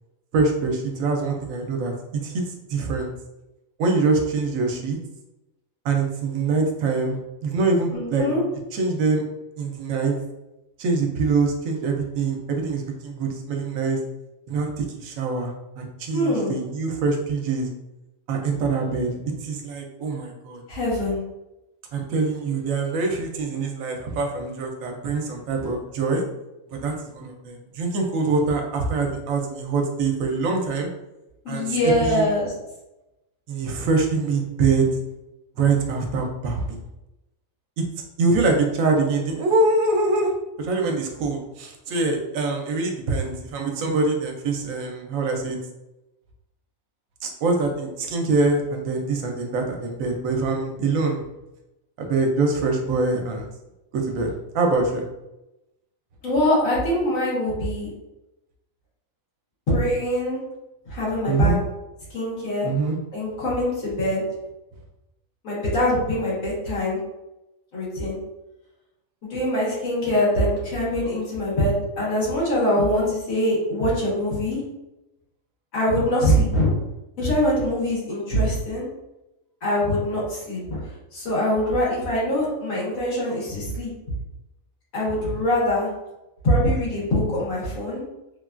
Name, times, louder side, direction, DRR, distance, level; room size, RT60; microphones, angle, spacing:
voice 1, 0.3-3.1 3.8-5.0 5.8-8.3 8.7-9.2 9.6-10.1 10.8-14.0 14.5-17.7 18.3-20.6 21.9-26.2 26.7-30.9 31.5-32.3 33.5-34.9 35.6-36.8 37.8-37.9 38.2-45.6 47.2-51.3 52.0-53.5 53.9-55.1 61.3-61.6 62.6-63.0, right 3 dB, 80° right, 2 dB, 1.0 m, -24 dB
voice 2, 7.9-8.4 16.1-16.5 20.7-21.2 31.4-32.5 56.2-57.9 59.7-60.4 60.8-61.5 62.1-62.7 63.1-64.2 65.4-67.0 67.7-68.2 69.2-74.6 75.7-76.7 77.2-78.9 79.6-80.8 81.1-83.9 84.9-85.9 86.4-88.0, left 1 dB, 80° left, -7 dB, 1.7 m, -23 dB
3.3 x 2.3 x 2.4 m, 0.95 s
omnidirectional pair, 1.4 m